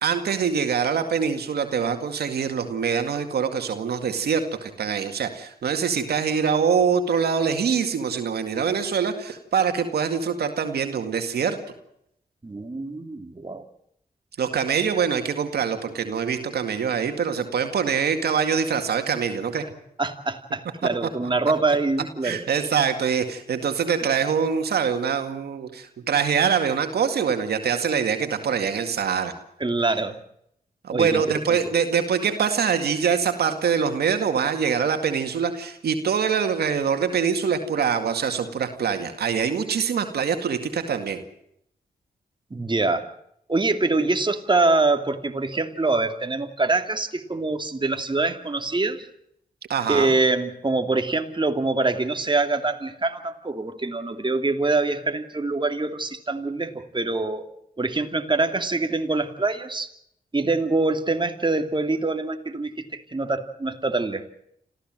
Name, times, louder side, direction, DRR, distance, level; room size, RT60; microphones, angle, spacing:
voice 1, 0.0-11.6 14.4-19.6 22.2-29.3 30.8-41.2 49.7-50.1, right 6 dB, 90° right, 7 dB, 2.1 m, -24 dB
voice 2, 12.4-13.6 20.0-22.4 29.6-30.2 30.9-31.2 31.5-31.6 42.5-43.1 43.5-49.1 49.9-57.5 57.8-59.9 60.3-64.4, right 3 dB, 30° right, 6 dB, 2.7 m, -24 dB
26.5 x 15.5 x 7.7 m, 0.74 s
cardioid pair, 55°, 16 cm